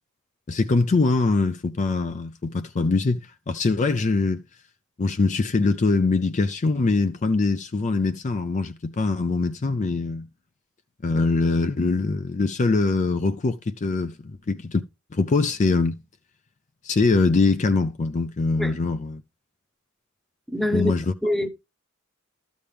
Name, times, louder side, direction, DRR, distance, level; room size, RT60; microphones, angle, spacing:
voice 1, 0.5-4.4 5.0-10.3 11.0-14.8 15.1-16.0 16.8-19.2 20.7-21.1, left 3 dB, 35° left, 0.4 m, -23 dB
voice 2, 20.5-20.9 21.2-21.5, left 1 dB, ahead, 0.8 m, -24 dB
13.0 x 7.1 x 3.4 m
head